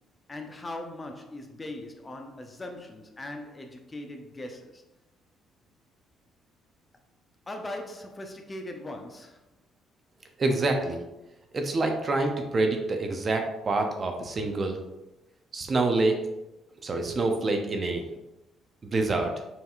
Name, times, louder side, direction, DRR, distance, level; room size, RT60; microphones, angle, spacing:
voice 1, 0.3-4.8 7.5-9.4, left 1 dB, 25° left, 4 dB, 0.6 m, -40 dB
voice 2, 10.4-11.0 11.5-14.8 15.5-16.2 16.8-18.0 18.8-19.3, right 2 dB, 40° right, 4 dB, 0.7 m, -26 dB
5.7 x 2.7 x 2.4 m, 0.97 s
supercardioid pair, 75°, 0 cm